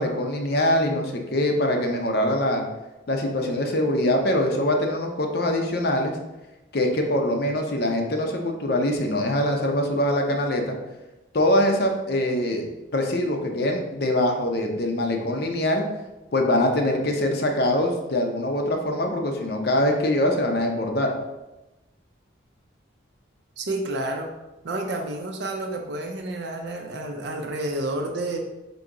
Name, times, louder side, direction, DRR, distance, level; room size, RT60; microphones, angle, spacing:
voice 1, 0.0-2.6 3.1-6.2 6.7-10.8 11.3-12.6 12.9-15.8 16.3-21.1, left 1 dB, 55° left, 3 dB, 0.6 m, -23 dB
voice 2, 23.6-24.3 24.6-28.4, right 1 dB, 60° right, 3 dB, 0.5 m, -30 dB
3.8 x 2.8 x 4.7 m, 1.0 s
head